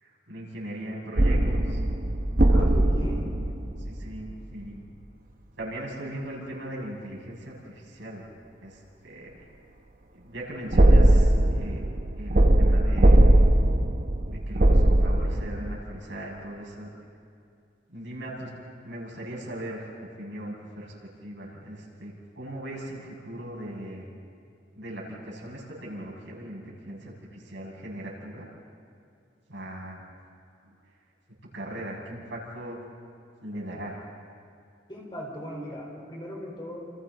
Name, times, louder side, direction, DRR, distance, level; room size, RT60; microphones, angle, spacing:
voice 1, 0.0-1.8 3.8-4.8 5.6-8.2 8.6-9.4 10.1-11.8 12.1-13.2 14.2-16.9 17.9-18.5 18.8-19.8 20.2-20.9 21.2-24.1 24.7-28.5 29.5-30.0 31.5-32.8 33.4-34.0, right 1 dB, 85° right, -3 dB, 6.5 m, -39 dB
sound 1, 1.2-4.3 10.7-15.8, right 1 dB, 45° right, 0.9 m, -20 dB
voice 2, 2.5-3.4 34.9-36.8, equal, 25° left, -2 dB, 4.4 m, -38 dB
29.0 x 28.0 x 4.1 m, 2.5 s
head